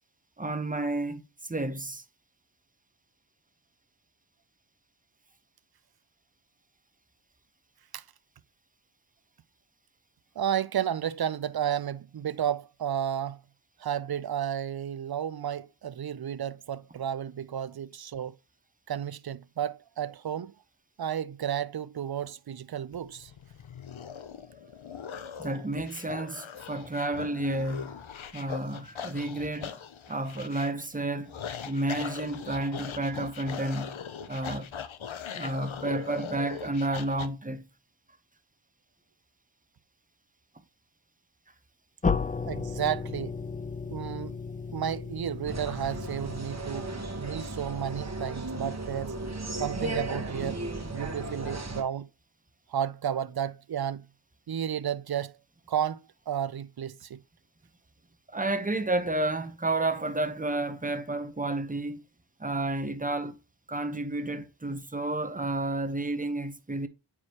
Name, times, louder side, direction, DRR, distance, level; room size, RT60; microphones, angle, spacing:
voice 1, 0.4-2.0 25.4-28.0 28.3-29.8 30.1-31.3 31.7-34.0 34.3-34.7 35.3-37.6 58.3-62.0 62.4-63.4 63.7-66.9, right 2 dB, 15° right, 0.9 m, -31 dB
voice 2, 10.4-13.4 13.8-18.3 18.9-20.5 21.0-23.3 42.5-43.4 43.9-44.4 44.7-46.9 47.2-49.2 49.6-52.1 52.7-54.1 54.5-55.4 55.7-57.2, right 9 dB, 50° right, 0.5 m, -32 dB
sound 1, 22.9-37.3, left 7 dB, 70° left, 0.7 m, -40 dB
sound 2, 42.0-46.8, left 5 dB, 20° left, 0.3 m, -33 dB
sound 3, 45.5-51.8, right 2 dB, 30° right, 1.4 m, -35 dB
8.4 x 4.8 x 3.0 m
wide cardioid pair, 55°, 49 cm